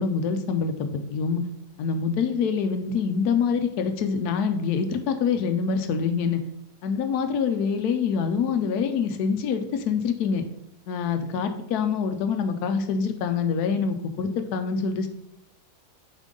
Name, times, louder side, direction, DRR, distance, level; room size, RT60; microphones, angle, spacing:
voice 1, 0.0-1.4 1.8-6.4 6.8-10.4 10.9-15.1, left 6 dB, 80° left, 7 dB, 1.2 m, -25 dB
7.1 x 4.5 x 3.8 m, 0.75 s
omnidirectional pair, 1.7 m